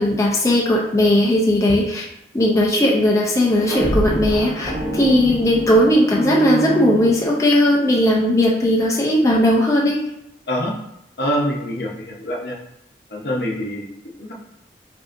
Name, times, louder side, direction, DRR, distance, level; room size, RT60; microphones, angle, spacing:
voice 1, 0.0-2.0 2.3-10.0, left 1 dB, 20° left, -3 dB, 0.5 m, -17 dB
sound 1, 3.4-7.7, right 2 dB, 10° right, 1.4 m, -25 dB
voice 2, 11.2-12.6 13.1-14.3, equal, 65° left, -1 dB, 0.8 m, -25 dB
5.1 x 2.7 x 2.5 m, 0.82 s
head